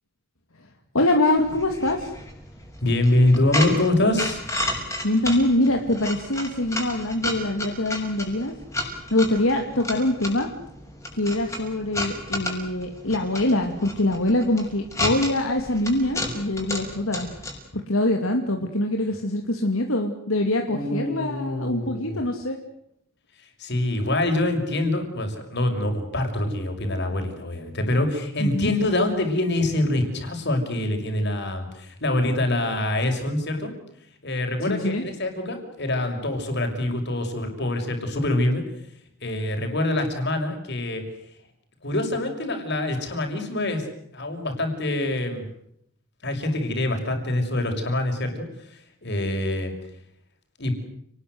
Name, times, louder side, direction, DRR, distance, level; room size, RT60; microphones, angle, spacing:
voice 1, 0.9-2.1 5.0-8.5 9.1-10.5 11.2-17.3 17.7-22.6 28.4-28.7 34.7-35.0, left 1 dB, 75° left, 3 dB, 2.8 m, -24 dB
sound 1, 1.3-17.6, left 1 dB, 15° left, 6.6 m, -33 dB
voice 2, 2.8-4.5 20.7-22.2 23.6-33.7 34.2-38.6 39.2-41.0 41.8-45.4 46.2-48.5 49.0-49.7 50.6-50.7, left 1 dB, 50° left, 5 dB, 6.3 m, -25 dB
30.0 x 20.5 x 8.1 m, 0.74 s
head